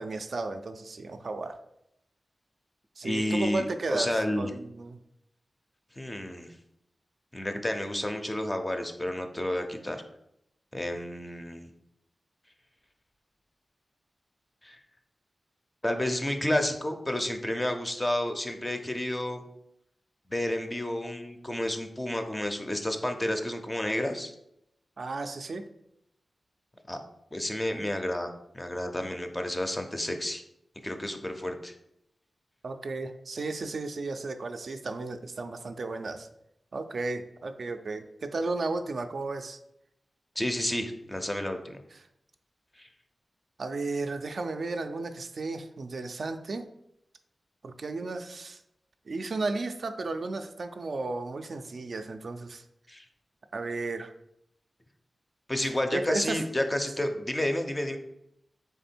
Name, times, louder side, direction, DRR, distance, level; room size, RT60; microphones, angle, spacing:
voice 1, 0.0-1.6 3.0-5.0 25.0-25.7 32.6-36.3 36.7-39.6 41.9-42.1 43.6-46.7 47.6-48.6 49.1-52.6 53.5-54.1 55.7-56.5 57.0-57.1, right 3 dB, 55° right, 7 dB, 0.3 m, -34 dB
voice 2, 3.0-4.5 6.0-6.5 7.3-10.0 10.7-11.7 14.6-14.8 15.8-19.4 20.3-24.3 26.9-27.0 27.3-30.4 30.8-31.7 40.4-41.8 42.8-42.9 52.9-53.1 55.5-58.0, left 1 dB, 15° left, 6 dB, 0.4 m, -30 dB
3.6 x 3.3 x 4.3 m, 0.79 s
wide cardioid pair, 140°, 0 cm